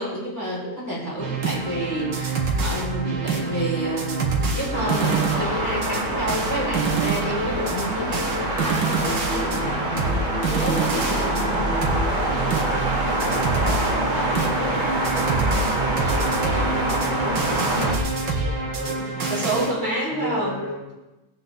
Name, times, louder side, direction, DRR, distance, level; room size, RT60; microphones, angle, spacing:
voice 1, 0.0-11.9 19.3-20.5, right 1 dB, 10° left, -8 dB, 5.8 m, -29 dB
sound 1, 1.2-19.7, right 3 dB, 70° right, 2.3 m, -27 dB
sound 2, 4.7-18.0, right 1 dB, 25° right, 2.0 m, -25 dB
voice 2, 11.3-11.8 12.6-13.4 14.1-20.9, left 2 dB, 5° right, -8 dB, 5.3 m, -38 dB
20.0 x 8.9 x 4.0 m, 1.0 s
omnidirectional pair, 2.1 m